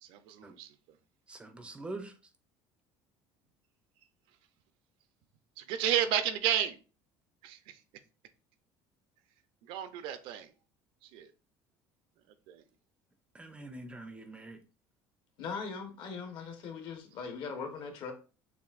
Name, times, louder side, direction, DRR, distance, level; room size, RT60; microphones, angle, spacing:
voice 1, 0.0-0.7 5.6-6.8 7.4-7.8 9.7-10.5 11.0-11.3 12.5-12.6, right 10 dB, 70° right, 0.6 m, -32 dB
voice 2, 1.3-2.1 13.3-14.6, right 2 dB, 10° right, 0.5 m, -44 dB
voice 3, 15.4-18.1, left 5 dB, 55° left, 1.1 m, -40 dB
6.9 x 2.6 x 2.4 m
cardioid pair, 150°, 9 cm